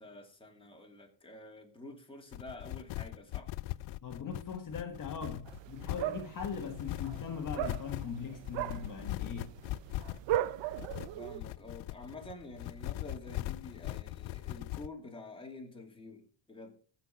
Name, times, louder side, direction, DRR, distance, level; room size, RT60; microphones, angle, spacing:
voice 1, 0.0-3.5 11.2-16.8, left 2 dB, 10° left, 2.6 m, -48 dB
sound 1, 2.3-14.9, left 18 dB, 80° left, 0.5 m, -40 dB
voice 2, 4.0-9.5, left 6 dB, 45° left, 1.6 m, -40 dB
sound 2, 5.5-11.4, right 14 dB, 75° right, 0.8 m, -38 dB
15.0 x 5.9 x 5.8 m
cardioid pair, 140°, 44 cm